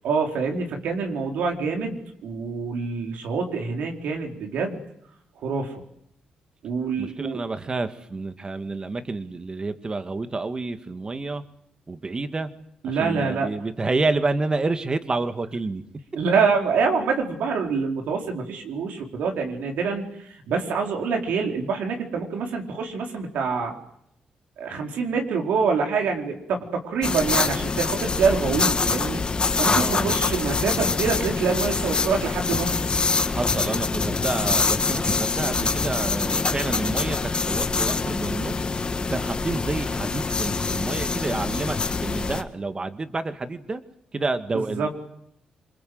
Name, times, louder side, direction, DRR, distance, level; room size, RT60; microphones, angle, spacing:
voice 1, 0.0-4.8 5.4-5.7 6.6-7.4 12.8-13.5 16.1-23.8 24.6-29.2 29.6-32.7 44.5-44.9, right 5 dB, 85° right, 2 dB, 4.6 m, -26 dB
voice 2, 7.0-11.4 11.9-12.5 12.8-15.8 29.7-30.5 33.3-38.5 39.1-41.8 42.0-43.8 44.1-44.9, right 3 dB, 30° right, 9 dB, 2.1 m, -29 dB
sound 1, 27.0-42.4, left 4 dB, 35° left, 2.1 m, -25 dB
27.5 x 22.0 x 8.0 m, 0.75 s
cardioid pair, 75°, 3 cm